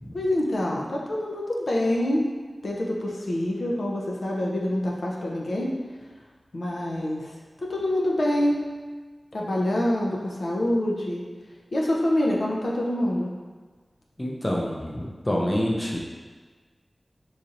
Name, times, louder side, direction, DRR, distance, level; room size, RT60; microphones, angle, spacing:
voice 1, 0.1-2.3 2.6-5.8 6.5-7.3 7.6-8.7 9.3-11.2 11.7-13.3, left 1 dB, 85° left, -2 dB, 0.5 m, -26 dB
voice 2, 14.2-16.0, equal, 25° left, -2 dB, 0.5 m, -27 dB
4.0 x 3.0 x 2.5 m, 1.4 s
wide cardioid pair, 80°, 0 cm